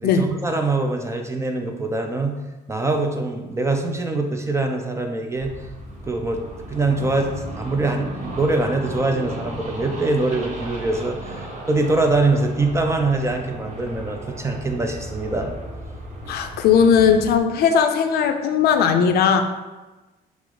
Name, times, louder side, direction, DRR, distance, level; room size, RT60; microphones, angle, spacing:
voice 1, 0.0-2.3 2.7-5.5 6.1-6.4 6.7-7.3 7.6-15.6, right 2 dB, 15° right, 4 dB, 0.5 m, -23 dB
sound 1, 5.3-17.4, right 1 dB, 45° right, 1.0 m, -35 dB
voice 2, 16.3-19.4, left 7 dB, 65° left, 7 dB, 0.5 m, -18 dB
5.9 x 2.0 x 3.8 m, 1.1 s
cardioid pair, 110°, 17 cm